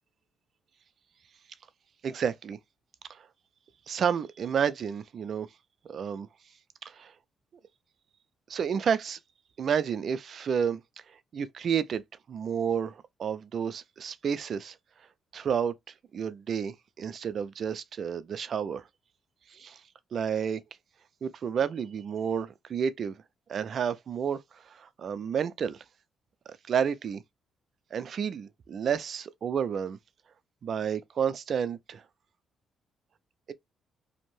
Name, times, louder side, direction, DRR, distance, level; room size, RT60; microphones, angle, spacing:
voice 1, 2.0-2.6 3.1-3.3 3.9-5.5 5.9-6.3 6.8-7.1 8.5-9.2 9.6-10.8 11.3-12.0 12.3-14.8 15.3-15.7 16.1-18.9 19.5-19.8 20.1-20.6 21.2-23.2 23.5-25.8 26.5-27.2 27.9-30.0 30.6-32.0, right 7 dB, 55° right, 0.3 m, -30 dB
2.6 x 2.1 x 3.0 m
cardioid pair, 90°, 0 cm